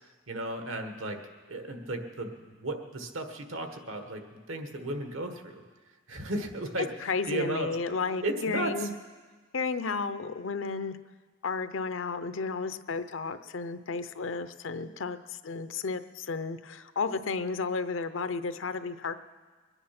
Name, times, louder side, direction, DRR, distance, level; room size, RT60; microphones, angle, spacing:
voice 1, 0.0-5.6 6.1-7.7 8.2-8.9, right 1 dB, 80° right, 6 dB, 1.5 m, -35 dB
voice 2, 7.0-8.9 9.5-11.0 11.4-19.1, left 4 dB, 70° left, 11 dB, 0.7 m, -33 dB
23.0 x 10.0 x 5.9 m, 1.4 s
head